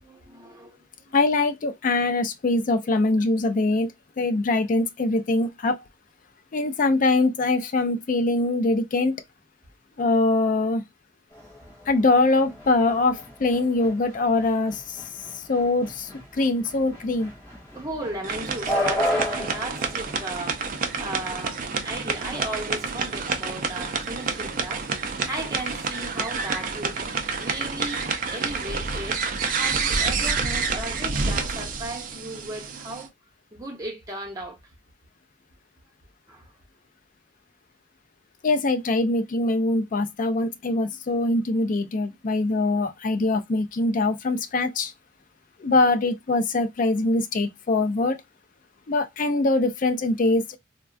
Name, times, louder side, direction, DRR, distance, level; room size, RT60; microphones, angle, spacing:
voice 1, 0.0-1.1 17.7-21.6 21.8-33.1 33.5-34.6 36.3-36.5, right 1 dB, 15° right, 0.9 m, -36 dB
voice 2, 1.1-3.9 4.2-5.8 6.5-9.2 10.0-10.8 11.9-15.0 15.3-17.3 38.4-44.9 45.6-48.2 48.9-50.6, left 2 dB, 45° left, 0.4 m, -23 dB
sound 1, 11.3-30.9, left 1 dB, 20° left, 1.6 m, -37 dB
sound 2, 18.2-33.1, right 4 dB, 45° right, 0.4 m, -28 dB
3.4 x 2.2 x 2.4 m
head